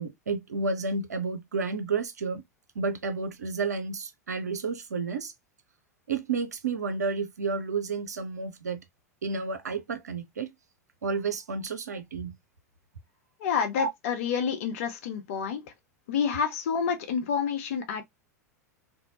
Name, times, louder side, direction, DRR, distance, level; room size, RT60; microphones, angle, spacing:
voice 1, 0.0-2.4 2.8-5.3 6.1-8.8 9.2-10.5 11.0-12.3 13.8-13.9, right 4 dB, 75° right, 0.6 m, -31 dB
voice 2, 13.4-15.6 16.1-18.0, left 6 dB, 55° left, 0.8 m, -28 dB
2.7 x 2.2 x 2.8 m
figure-of-eight pair, 90°, 9 cm